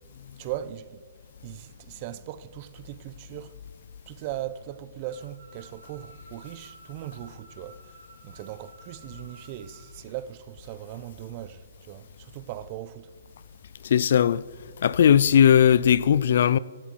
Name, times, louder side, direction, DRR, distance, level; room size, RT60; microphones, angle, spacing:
voice 1, 0.3-1.0 1.4-3.6 4.1-13.1, right 13 dB, 35° right, 0.6 m, -39 dB
sound 1, 5.0-9.9, right 2 dB, 80° right, 4.1 m, -53 dB
voice 2, 13.8-14.4 14.8-16.6, left 9 dB, 60° left, 0.4 m, -18 dB
15.5 x 11.5 x 4.5 m
hypercardioid pair, 150°, 0 cm